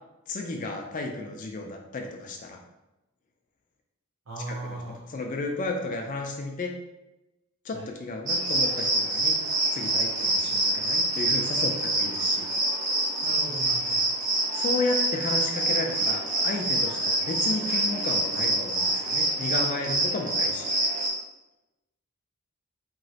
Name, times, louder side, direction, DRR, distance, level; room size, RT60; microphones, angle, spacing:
voice 1, 0.3-2.6 4.4-4.8 5.1-6.7 7.6-9.4 9.7-12.5 14.5-20.7, left 2 dB, 35° left, 3 dB, 0.3 m, -33 dB
voice 2, 4.3-5.1 7.7-7.8 13.2-14.1, right 2 dB, 70° right, -5 dB, 0.7 m, -38 dB
sound 1, 8.3-21.1, right 2 dB, 35° right, 0.8 m, -26 dB
3.0 x 2.8 x 2.7 m, 0.96 s
head